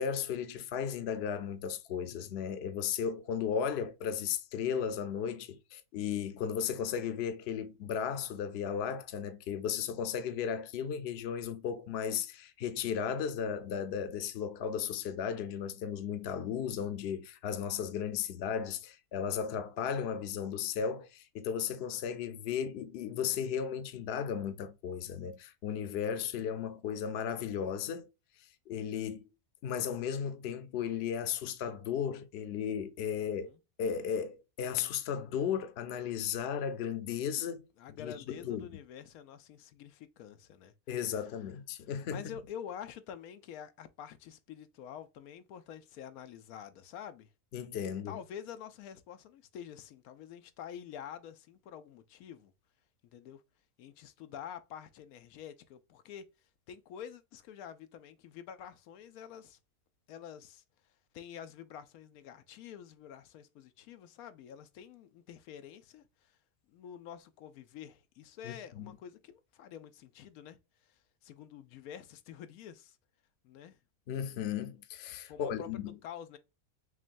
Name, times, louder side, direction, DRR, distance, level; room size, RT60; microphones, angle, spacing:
voice 1, 0.0-28.1 28.7-29.3 29.6-33.5 33.8-37.7 38.0-38.7 40.9-42.2 47.5-48.2 68.4-69.0 74.1-75.9, left 8 dB, 60° left, 0.8 m, -35 dB
voice 2, 33.1-33.6 37.8-40.7 42.1-47.3 48.1-52.5 53.1-53.4 53.8-56.2 56.7-59.6 60.1-60.6 61.1-66.4 66.7-70.6 71.2-73.0 73.4-73.8 75.3-76.4, left 9 dB, 90° left, 1.1 m, -47 dB
6.1 x 2.2 x 2.5 m
omnidirectional pair, 1.5 m